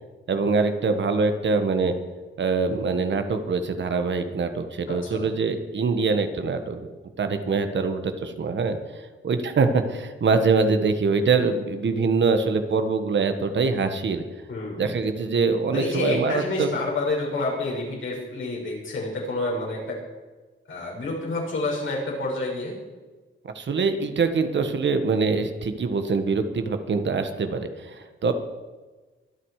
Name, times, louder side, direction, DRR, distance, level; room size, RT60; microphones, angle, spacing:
voice 1, 0.3-1.9 2.4-6.9 7.2-14.2 14.8-16.7 23.4-28.3, right 4 dB, 60° right, 8 dB, 1.5 m, -24 dB
voice 2, 4.9-5.3 14.5-15.1 15.7-20.0 20.7-22.8, left 2 dB, 70° left, -3 dB, 6.6 m, -29 dB
24.0 x 9.8 x 5.0 m, 1.3 s
wide cardioid pair, 110°, 21 cm